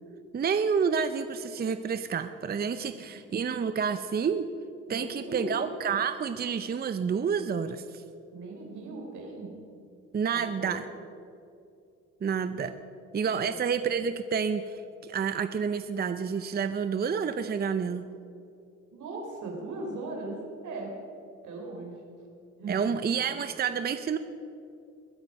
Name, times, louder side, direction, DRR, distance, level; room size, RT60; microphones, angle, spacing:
voice 1, 0.3-4.5 4.9-8.0 10.1-10.8 12.2-12.7 13.1-18.0 22.7-24.2, right 6 dB, 30° right, 10 dB, 0.6 m, -29 dB
voice 2, 4.9-5.6 8.3-9.5 10.3-10.8 13.3-13.5 18.9-20.4 20.6-20.9 21.4-22.0 22.6-22.9, right 2 dB, 75° right, 0 dB, 3.8 m, -38 dB
22.0 x 8.8 x 5.4 m, 2.5 s
cardioid pair, 90°, 30 cm